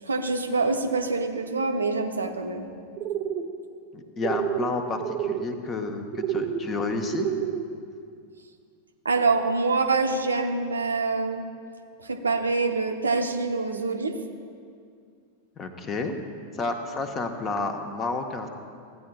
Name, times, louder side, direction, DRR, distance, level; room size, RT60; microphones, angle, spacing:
voice 1, 0.0-2.7 9.0-11.4 12.0-14.2, right 3 dB, 75° right, 4 dB, 0.6 m, -25 dB
sound 1, 3.0-3.5 4.2-4.7 4.9-5.4 6.1-6.6 7.1-7.6, right 10 dB, 35° right, 0.5 m, -28 dB
voice 2, 3.9-7.3 15.6-16.2 16.5-18.5, left 3 dB, 25° left, 6 dB, 0.8 m, -30 dB
15.0 x 9.2 x 2.2 m, 2.3 s
figure-of-eight pair, 90°, 0 cm